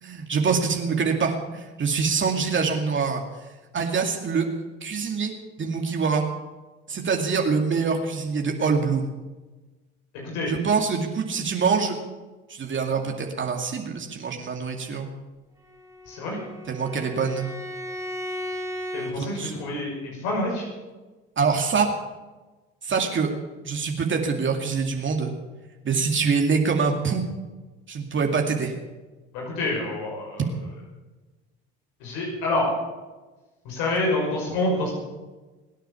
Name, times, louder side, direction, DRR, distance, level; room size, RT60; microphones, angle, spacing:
voice 1, 0.0-3.2 3.7-4.5 4.8-5.3 5.6-6.3 6.9-9.0 10.5-12.0 12.5-15.1 16.7-17.5 19.1-19.5 21.4-21.9 22.8-23.3 23.6-25.3 25.8-27.2 27.9-28.7, right 5 dB, 40° right, 2 dB, 2.4 m, -25 dB
Bowed string instrument, 15.6-19.2, left 1 dB, 10° right, 4.1 m, -35 dB
voice 2, 16.1-16.4 18.9-20.7 29.3-30.4 32.0-32.7 33.6-34.9, left 2 dB, 85° left, -2 dB, 6.0 m, -27 dB
22.0 x 9.2 x 7.1 m, 1.2 s
supercardioid pair, 80°, 30 cm